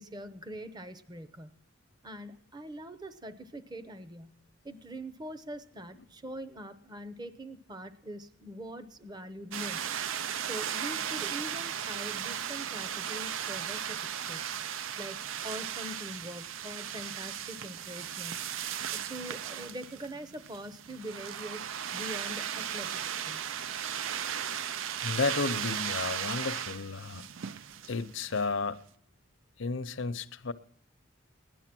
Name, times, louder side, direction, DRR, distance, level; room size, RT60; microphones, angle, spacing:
voice 1, 0.0-1.5 2.0-9.9 10.5-14.5 15.0-18.5 18.8-23.4, equal, 20° right, 0.7 m, -43 dB
sound 1, 9.5-28.5, right 9 dB, 80° right, 0.5 m, -36 dB
voice 2, 25.0-27.3 27.9-28.8 29.6-30.5, left 4 dB, 75° left, 0.7 m, -32 dB
17.0 x 11.0 x 6.1 m
head